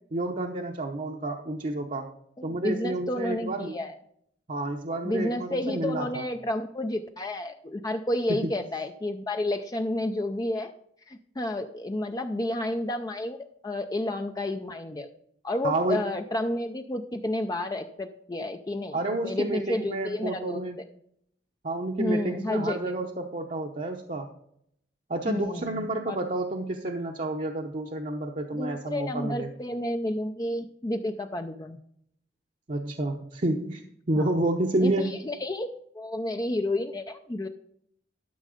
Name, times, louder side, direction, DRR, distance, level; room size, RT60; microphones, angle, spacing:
voice 1, 0.1-2.1 2.4-3.8 4.5-6.2 8.3-8.5 15.6-16.0 18.9-20.8 21.6-24.3 25.1-29.5 32.7-33.8 34.1-35.3, right 2 dB, 45° right, 1 dB, 0.8 m, -30 dB
voice 2, 2.4-4.0 5.0-10.7 11.1-13.4 13.6-15.1 15.4-20.6 22.0-23.0 25.3-26.2 28.5-31.8 34.2-34.3 34.8-35.7 35.9-37.5, left 1 dB, 20° left, 6 dB, 0.5 m, -31 dB
12.5 x 6.4 x 5.0 m, 0.70 s
head